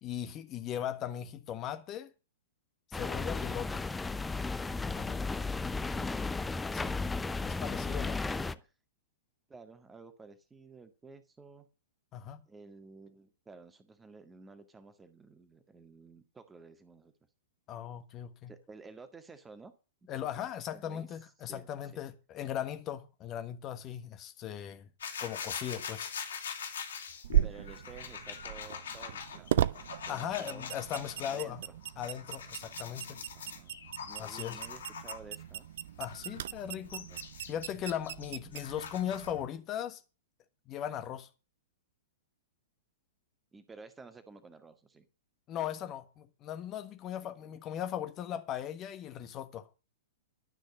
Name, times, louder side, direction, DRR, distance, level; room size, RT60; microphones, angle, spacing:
voice 1, 0.0-2.1 2.9-3.9 4.9-5.2 6.7-7.0 7.4-8.2 12.1-12.4 17.7-18.5 20.1-24.9 25.2-26.2 30.1-31.6 32.0-33.2 34.2-34.6 36.0-37.1 37.5-40.0 40.7-41.3 45.5-49.7, left 10 dB, 30° left, 1.4 m, -38 dB
sound 1, 2.9-8.5, left 3 dB, 10° left, 0.7 m, -34 dB
voice 2, 5.7-6.4 6.7-7.3 8.1-8.7 9.5-11.7 12.5-17.1 18.5-19.7 20.0-20.1 20.7-21.2 21.5-21.7 27.4-30.7 31.3-31.7 33.3-33.8 34.0-35.7 36.6-37.2 43.5-45.1 47.2-47.6, right 4 dB, 10° right, 1.8 m, -52 dB
sound 2, 25.0-31.4 31.8-35.4 36.0-39.4, left 6 dB, 65° left, 3.3 m, -43 dB
sound 3, 27.2-39.5, right 12 dB, 55° right, 0.6 m, -37 dB
12.0 x 6.4 x 9.6 m
figure-of-eight pair, 105°, 0 cm